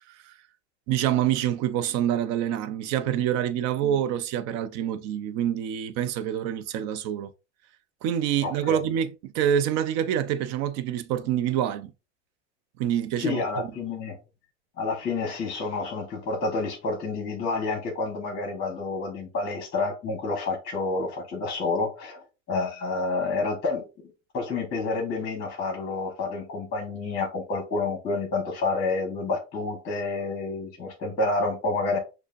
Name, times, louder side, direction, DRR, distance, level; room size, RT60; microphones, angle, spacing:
voice 1, 0.9-7.3 8.0-11.9 12.8-13.4, right 10 dB, 50° right, 0.5 m, -26 dB
voice 2, 8.4-8.8 13.2-14.2 14.8-23.8 24.3-32.0, left 3 dB, 30° left, 1.1 m, -29 dB
6.3 x 2.1 x 2.5 m
supercardioid pair, 125°, 35 cm